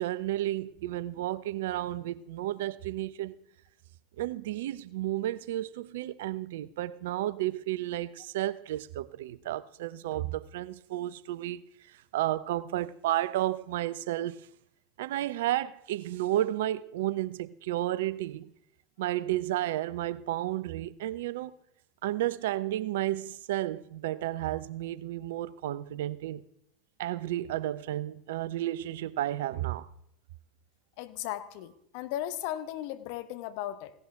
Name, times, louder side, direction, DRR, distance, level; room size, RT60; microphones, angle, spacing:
voice 1, 0.0-3.3 4.2-11.6 12.1-14.4 15.0-18.5 19.0-21.5 22.0-26.4 27.0-29.9, right 14 dB, 70° right, 0.6 m, -32 dB
voice 2, 31.0-33.9, left 12 dB, 60° left, 1.0 m, -36 dB
17.0 x 11.0 x 3.5 m
hypercardioid pair, 75°, 0 cm